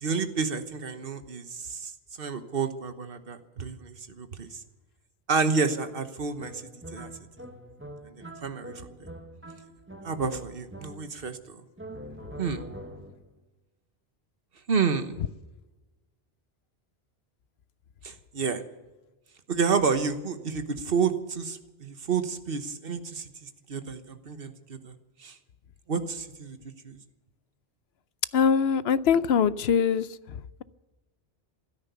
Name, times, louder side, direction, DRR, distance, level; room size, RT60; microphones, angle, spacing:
voice 1, 0.0-1.9 2.2-4.6 5.3-6.6 6.9-7.1 8.2-9.1 10.0-11.6 12.4-12.7 14.7-15.2 18.0-18.6 19.5-25.4 25.9-26.6 26.8-27.0, right 5 dB, 65° right, 9 dB, 1.4 m, -30 dB
sound 1, 6.4-11.4 11.8-13.3, equal, 10° right, 1.3 m, -44 dB
voice 2, 28.3-30.6, left 7 dB, 75° left, 16 dB, 0.9 m, -23 dB
15.5 x 13.0 x 6.9 m, 1.1 s
omnidirectional pair, 1.1 m